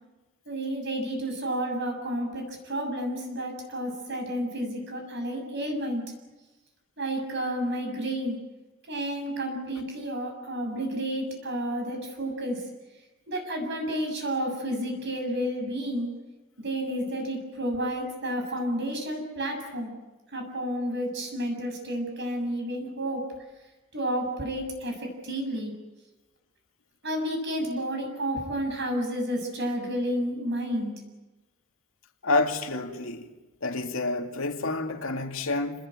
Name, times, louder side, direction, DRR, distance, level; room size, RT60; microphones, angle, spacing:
voice 1, 0.5-6.0 7.0-8.4 8.9-12.6 13.3-16.1 16.6-20.0 20.3-23.3 23.9-25.7 27.0-31.0, equal, 55° right, 7.1 m, -31 dB
voice 2, 32.2-33.3 33.6-35.9, left 2 dB, 70° left, 2.6 m, -28 dB
28.5 x 20.5 x 9.1 m
head